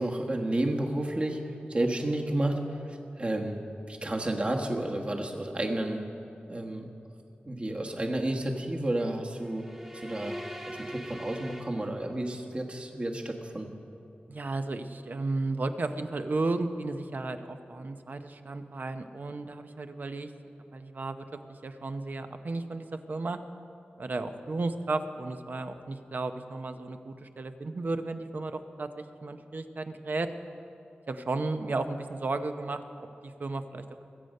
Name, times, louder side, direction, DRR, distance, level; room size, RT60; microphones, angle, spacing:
voice 1, 0.0-1.4 1.7-2.6 2.9-3.6 3.9-6.0 6.5-6.9 7.5-9.7 9.9-10.3 10.7-13.7, right 1 dB, 30° right, 2 dB, 1.4 m, -31 dB
sound 1, 9.4-12.5, equal, 15° right, 1.1 m, -42 dB
voice 2, 14.3-20.3 20.7-23.4 24.0-30.3 31.1-34.0, right 3 dB, 55° right, 8 dB, 0.7 m, -34 dB
21.5 x 7.9 x 5.4 m, 2.9 s
wide cardioid pair, 105°, 4 cm